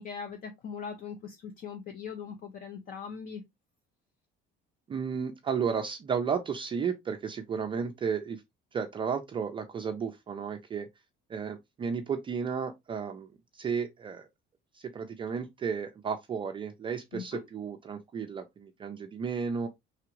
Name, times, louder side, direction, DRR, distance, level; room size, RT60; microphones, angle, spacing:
voice 1, 0.0-3.4 17.1-17.4, left 6 dB, 45° left, 0.6 m, -40 dB
voice 2, 4.9-8.4 8.7-10.9 11.3-14.3 14.7-19.7, right 6 dB, 25° right, 0.4 m, -33 dB
4.8 x 3.4 x 2.9 m
cardioid pair, 170°, 21 cm